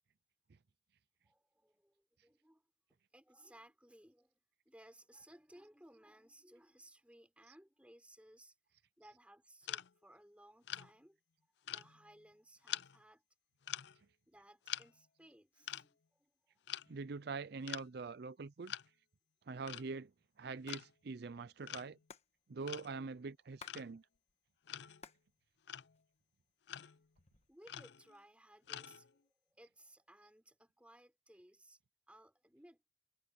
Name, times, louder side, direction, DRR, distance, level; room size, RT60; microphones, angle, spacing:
voice 1, 1.2-2.6 2.9-8.6 9.0-11.2 11.7-13.2 14.3-16.4 27.5-31.8 32.1-32.9, right 1 dB, 5° right, 5.6 m, -62 dB
sound 1, 9.6-9.9 10.6-10.9 11.7-12.2 12.7-13.0 13.6-14.0 14.7-14.9 15.7-15.9 16.7-16.9 17.7-17.9 18.7-18.9 19.7-19.9 20.7-20.9 21.7-22.0 22.7-22.9 23.6-23.9 24.7-25.1 25.7-26.0 26.7-27.1 27.7-28.2 28.7-29.2, left 11 dB, 65° left, 0.5 m, -45 dB
voice 2, 16.9-18.7 19.5-20.1 20.4-22.0 22.5-24.0, right 4 dB, 55° right, 0.5 m, -44 dB
Hands, 20.7-20.8 21.1-21.2 21.4-23.8 24.1-25.3 25.6-26.4 27.0-27.6, left 5 dB, 35° left, 1.4 m, -57 dB
head